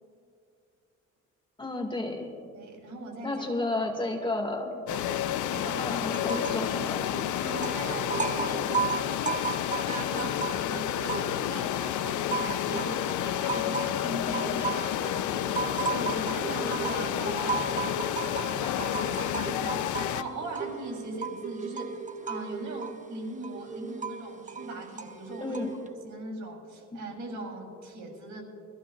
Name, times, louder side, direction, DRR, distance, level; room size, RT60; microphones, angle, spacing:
voice 1, 1.6-2.3 3.2-4.8 5.8-7.2 25.4-25.7 26.9-27.0, left 2 dB, 15° left, 2 dB, 2.1 m, -32 dB
voice 2, 2.5-3.4 4.7-5.1 5.5-5.9 6.5-6.6 7.4-9.2 9.8-22.0 22.3-25.6 26.0-28.4, right 2 dB, 75° right, 1 dB, 3.4 m, -40 dB
sound 1, 4.9-20.2, left 11 dB, 75° left, 0.6 m, -30 dB
sound 2, 6.1-6.7 7.0-11.6 12.0-25.9, right 5 dB, 25° right, 0.9 m, -35 dB
22.5 x 14.5 x 2.5 m, 2.4 s
cardioid pair, 90°, 30 cm